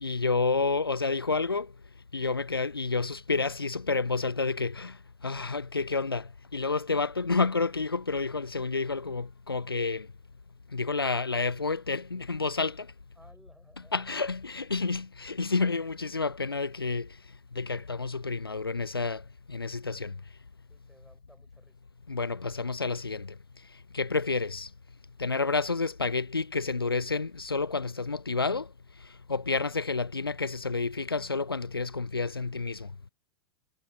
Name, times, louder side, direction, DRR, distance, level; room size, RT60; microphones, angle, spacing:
voice 1, 0.0-1.7 2.1-5.0 5.2-10.1 10.7-12.9 13.9-17.2 17.5-20.1 22.1-23.4 23.9-24.7 25.2-28.7 29.0-32.9, left 4 dB, 85° left, 0.5 m, -30 dB
voice 2, 13.1-14.0 20.7-21.8, right 1 dB, 5° right, 6.8 m, -59 dB
figure-of-eight pair, 90°, 12 cm